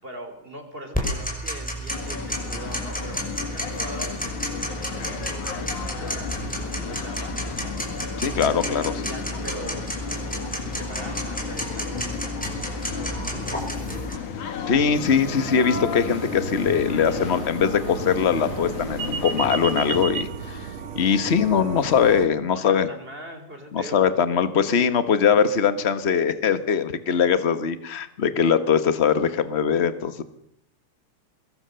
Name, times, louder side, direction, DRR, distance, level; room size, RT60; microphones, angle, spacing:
voice 1, 0.0-5.5 5.8-8.2 8.6-9.9 10.5-14.3 14.7-15.0 22.5-24.3 28.0-28.1, right 1 dB, 20° right, 6 dB, 4.0 m, -41 dB
Tick-tock, 0.9-14.1, right 1 dB, 5° left, 5.0 m, -31 dB
sound 1, 1.9-20.1, left 7 dB, 85° left, 3.5 m, -34 dB
voice 2, 8.2-8.9 14.7-22.9 23.7-30.2, left 7 dB, 50° left, 12 dB, 0.7 m, -21 dB
sound 2, 14.9-22.3, right 5 dB, 65° right, 3.0 m, -33 dB
24.0 x 21.0 x 6.9 m, 0.77 s
omnidirectional pair, 3.3 m